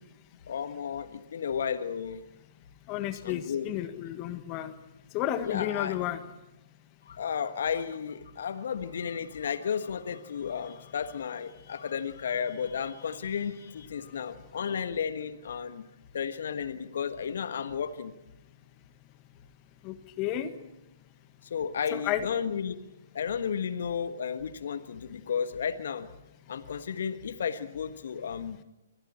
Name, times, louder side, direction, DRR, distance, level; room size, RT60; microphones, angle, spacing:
voice 1, 0.5-2.2 3.2-3.7 5.4-5.9 7.1-15.8 16.1-18.1 21.5-22.8 23.1-26.1 26.5-28.6, left 7 dB, 60° left, 10 dB, 1.5 m, -33 dB
voice 2, 2.9-4.7 5.1-6.2 19.8-20.5 21.9-22.3, left 12 dB, 30° left, 10 dB, 1.7 m, -32 dB
27.5 x 25.0 x 4.4 m, 0.92 s
figure-of-eight pair, 125°, 0 cm